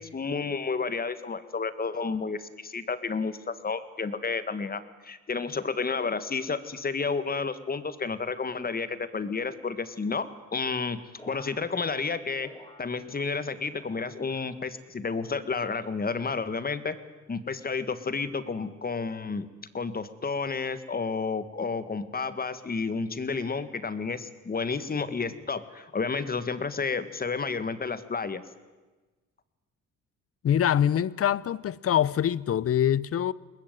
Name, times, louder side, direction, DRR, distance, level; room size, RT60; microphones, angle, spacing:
voice 1, 0.0-10.3 10.5-11.0 11.3-12.5 12.8-17.0 17.3-19.5 19.7-28.4, left 4 dB, 30° left, 1.7 m, -31 dB
sound 1, 11.2-13.4 13.7-14.5 15.0-15.7 16.3-16.8 17.7-18.1 19.0-19.3, left 1 dB, 15° left, 5.7 m, -54 dB
voice 2, 30.4-33.3, left 10 dB, 50° left, 0.8 m, -24 dB
21.5 x 20.0 x 9.3 m
cardioid pair, 90°, 30 cm